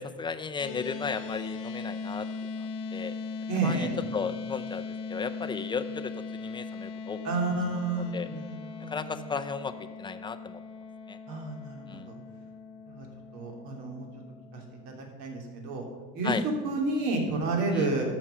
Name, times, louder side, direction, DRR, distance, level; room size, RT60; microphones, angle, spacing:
voice 1, 0.0-2.3 2.6-3.1 3.6-7.2 8.1-8.3 8.9-9.7 10.0-10.6 11.1-11.2 11.9-12.1 16.2-16.4 17.7-17.9, left 5 dB, 15° left, 9 dB, 0.5 m, -35 dB
sound 1, 0.6-15.0, left 4 dB, 80° left, 1.2 m, -39 dB
voice 2, 3.5-3.9 7.2-9.1 11.3-12.1 12.9-13.1 13.3-14.1 14.5-15.8 16.1-16.3 16.6-18.1, right 3 dB, 75° right, 1 dB, 3.0 m, -31 dB
13.5 x 6.2 x 5.6 m, 1.4 s
cardioid pair, 130°, 37 cm